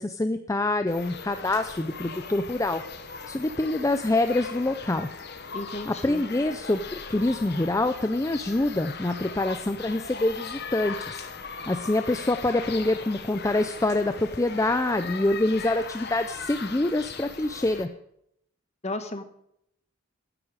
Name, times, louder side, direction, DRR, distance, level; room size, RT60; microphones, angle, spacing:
voice 1, 0.0-2.8 3.3-5.1 5.9-11.2 11.7-17.9, left 2 dB, 15° left, 9 dB, 0.4 m, -26 dB
sound 1, 0.9-17.9, left 5 dB, 50° left, 1.1 m, -39 dB
voice 2, 5.5-6.2 18.8-19.2, left 2 dB, 30° left, 8 dB, 1.2 m, -34 dB
16.0 x 9.9 x 4.9 m, 0.75 s
head